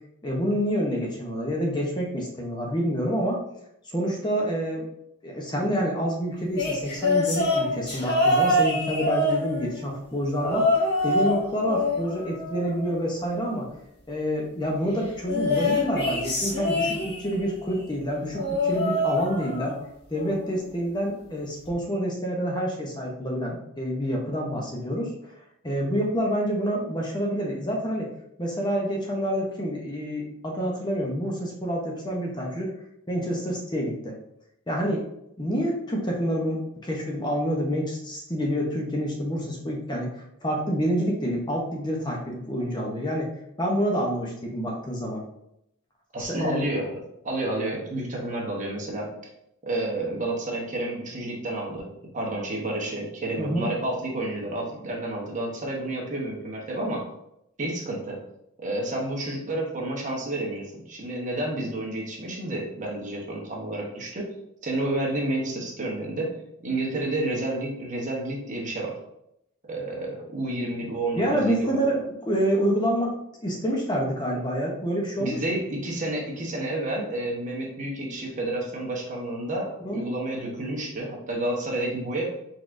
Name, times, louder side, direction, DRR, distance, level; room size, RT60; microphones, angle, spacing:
voice 1, 0.2-3.4 3.8-4.8 5.2-10.7 11.0-13.7 14.1-19.7 20.1-25.1 25.6-28.1 28.4-32.7 33.1-34.1 34.7-35.0 35.4-43.3 43.6-45.2 46.2-46.6 53.4-53.7 71.2-73.1 73.4-75.4 79.8-80.0, equal, 20° left, -1 dB, 0.7 m, -27 dB
sound 1, 6.5-9.9 10.4-11.4 11.7-13.2 15.3-17.5 18.3-19.8 20.2-20.5 21.7-21.8, left 1 dB, 50° left, 1.3 m, -25 dB
voice 2, 46.1-47.0 47.2-49.1 49.6-57.1 57.6-58.2 58.6-64.3 64.6-66.3 66.6-69.0 69.7-71.8 75.2-82.3, right 1 dB, 35° right, -1 dB, 1.0 m, -30 dB
4.6 x 4.0 x 2.5 m, 0.79 s
head